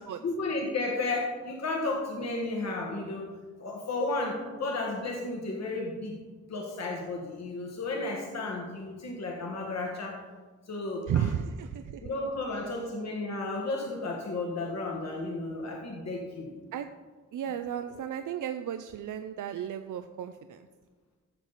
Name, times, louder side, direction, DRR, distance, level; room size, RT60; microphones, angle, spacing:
voice 1, 0.2-3.3 3.6-6.1 6.5-10.2 10.7-11.2 12.0-16.5, left 2 dB, 60° left, 0 dB, 1.5 m, -33 dB
voice 2, 11.1-12.1 16.7-16.9 17.3-20.7, right 9 dB, 90° right, 8 dB, 0.5 m, -33 dB
14.5 x 6.7 x 4.1 m, 1.3 s
wide cardioid pair, 155°, 30 cm